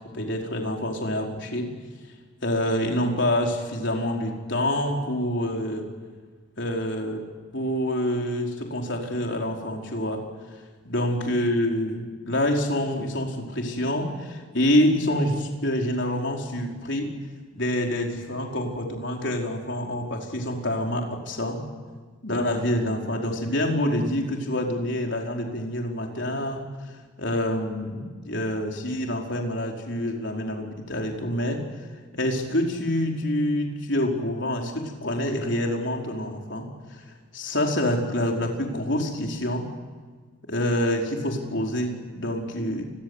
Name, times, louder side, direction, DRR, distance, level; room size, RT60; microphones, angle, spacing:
voice 1, 0.0-1.7 2.4-5.9 6.6-7.2 7.5-10.2 10.8-17.1 17.5-21.6 22.2-26.6 27.2-31.6 32.1-37.0 37.3-39.6 40.5-42.8, left 1 dB, 55° left, 1 dB, 4.9 m, -26 dB
29.5 x 22.5 x 8.3 m, 1.5 s
head